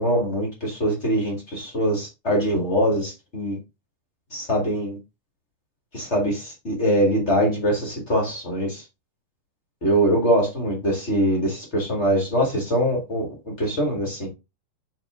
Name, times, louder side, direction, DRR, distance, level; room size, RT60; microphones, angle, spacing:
voice 1, 0.0-3.6 4.3-5.0 5.9-8.8 9.8-13.3 13.6-14.3, equal, 35° left, 1.1 m, -23 dB
8.7 x 3.3 x 3.6 m
omnidirectional pair, 4.4 m